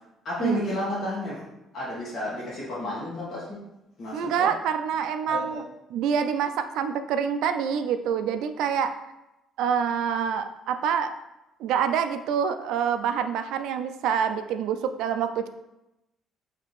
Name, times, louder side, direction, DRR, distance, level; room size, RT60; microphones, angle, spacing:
voice 1, 0.2-1.5 1.7-3.6 4.0-4.5 5.3-5.6, left 1 dB, 45° left, -7 dB, 1.3 m, -32 dB
voice 2, 4.1-5.6 5.9-8.9 9.6-11.1 11.6-15.5, right 7 dB, 80° right, 9 dB, 0.3 m, -26 dB
5.1 x 2.8 x 3.0 m, 0.92 s
cardioid pair, 145°, 0 cm